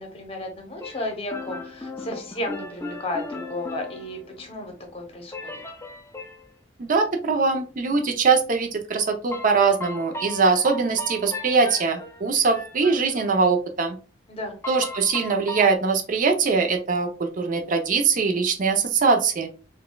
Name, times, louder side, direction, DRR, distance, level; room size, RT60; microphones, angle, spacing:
voice 1, 0.0-5.5 14.3-14.6, left 1 dB, 35° left, 3 dB, 0.8 m, -33 dB
sound 1, 0.8-4.6 5.3-6.5 9.3-13.4 14.6-15.8, left 2 dB, 15° left, 0.3 m, -37 dB
voice 2, 6.8-14.0 14.7-19.5, right 4 dB, 45° right, 4 dB, 0.5 m, -22 dB
4.0 x 2.2 x 2.2 m, 0.35 s
head